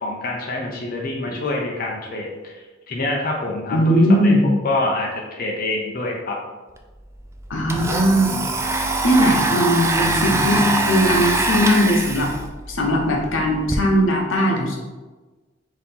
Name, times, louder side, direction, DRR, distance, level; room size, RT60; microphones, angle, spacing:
voice 1, 0.0-4.3 4.6-6.4, left 2 dB, 50° left, -2 dB, 0.6 m, -26 dB
voice 2, 3.7-4.5 7.5-8.5 9.0-12.3 12.7-14.8, equal, 80° left, 0 dB, 0.8 m, -19 dB
Domestic sounds home sounds, 6.8-6.9 7.1-13.8, right 2 dB, 15° right, 0.3 m, -23 dB
4.0 x 2.8 x 4.0 m, 1.3 s
head